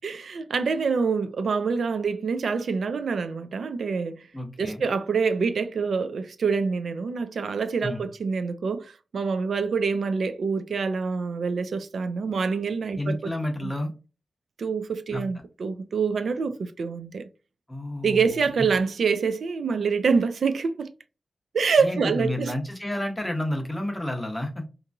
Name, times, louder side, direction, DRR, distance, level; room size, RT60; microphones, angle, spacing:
voice 1, 0.0-4.3 4.6-13.3 13.6-13.7 14.6-17.3 18.0-20.9 21.5-22.5, right 5 dB, 80° right, 0.3 m, -26 dB
voice 2, 4.3-4.8 7.8-8.0 13.0-13.9 15.1-15.2 17.7-18.5 21.8-24.6, left 1 dB, 10° left, 0.6 m, -30 dB
2.9 x 2.5 x 2.2 m
wide cardioid pair, 165°, 0 cm